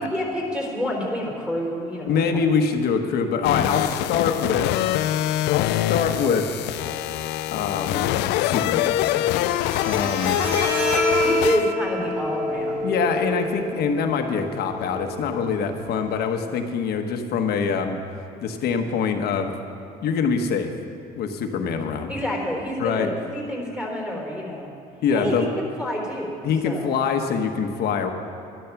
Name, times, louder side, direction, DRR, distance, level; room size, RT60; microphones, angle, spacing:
voice 1, 0.0-2.4 11.2-12.9 22.1-24.7 25.1-26.3 26.6-27.0, equal, 5° right, -1 dB, 3.6 m, -28 dB
voice 2, 2.0-4.7 5.5-6.5 7.5-8.1 8.4-9.5 9.8-10.4 12.8-18.0 18.4-19.5 20.0-20.7 21.2-22.1 22.8-23.1 25.0-25.5 26.4-28.1, left 6 dB, 70° left, 5 dB, 1.2 m, -24 dB
sound 1, 3.4-11.7, left 14 dB, 85° left, 0.4 m, -24 dB
Bowed string instrument, 9.4-16.3, left 1 dB, 40° right, 3.8 m, -28 dB
12.5 x 11.5 x 5.9 m, 2.7 s
cardioid pair, 110°, 17 cm